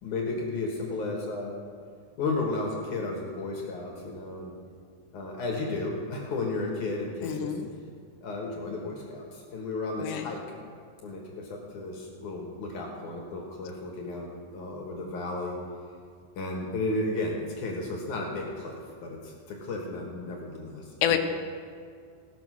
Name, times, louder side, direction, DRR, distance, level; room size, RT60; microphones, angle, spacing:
voice 1, 0.0-1.6 2.2-4.5 5.1-7.6 8.2-10.4 11.0-15.6 16.4-21.2, left 2 dB, 65° left, -1 dB, 2.1 m, -33 dB
voice 2, 7.2-7.7 10.0-10.3 21.0-21.2, left 10 dB, 80° left, 6 dB, 2.9 m, -27 dB
18.0 x 6.1 x 6.2 m, 2.2 s
omnidirectional pair, 5.2 m